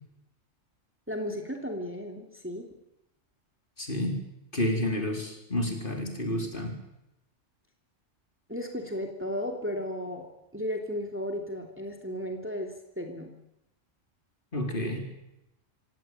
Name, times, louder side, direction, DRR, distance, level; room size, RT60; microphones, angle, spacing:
voice 1, 1.1-2.7 8.5-10.3 10.5-13.3, equal, 10° right, 3 dB, 2.9 m, -34 dB
voice 2, 3.8-4.2 4.5-6.7 14.5-15.0, left 1 dB, 40° left, 3 dB, 4.5 m, -30 dB
26.0 x 17.0 x 9.3 m, 0.87 s
omnidirectional pair, 1.3 m